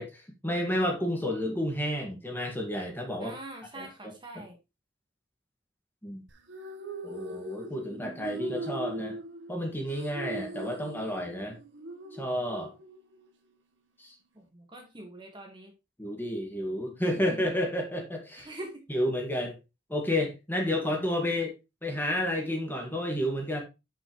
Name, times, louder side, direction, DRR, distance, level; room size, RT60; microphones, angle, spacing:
voice 1, 0.0-3.4 3.7-4.1 6.0-6.2 7.0-9.2 9.5-11.5 12.1-12.7 14.0-14.1 16.0-18.5 18.9-19.6 19.9-21.5 21.8-23.6, left 1 dB, 10° left, 1 dB, 1.8 m, -31 dB
voice 2, 3.2-4.6 14.3-15.7 18.4-18.8, right 1 dB, 25° right, 3 dB, 1.5 m, -44 dB
sound 1, 6.3-13.3, right 1 dB, 70° right, 1.2 m, -41 dB
9.8 x 5.6 x 3.1 m, 0.25 s
head